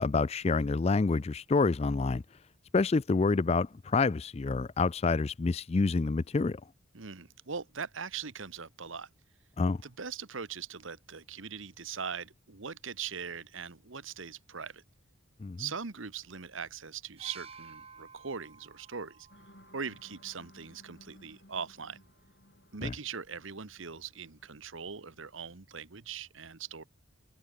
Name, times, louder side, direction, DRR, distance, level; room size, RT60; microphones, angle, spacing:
voice 1, 0.0-2.2 2.7-6.6 9.6-9.8 15.4-15.7 22.8-22.9, left 4 dB, 30° left, 0.4 m, -27 dB
voice 2, 6.9-9.1 9.8-14.8 15.6-19.3 19.7-22.0 22.7-26.8, right 6 dB, 70° right, 1.2 m, -41 dB
sound 1, 17.2-21.0 22.0-22.2, right 5 dB, 30° right, 4.9 m, -53 dB
sound 2, 19.3-25.3, left 1 dB, 50° left, 3.5 m, -60 dB
open air
head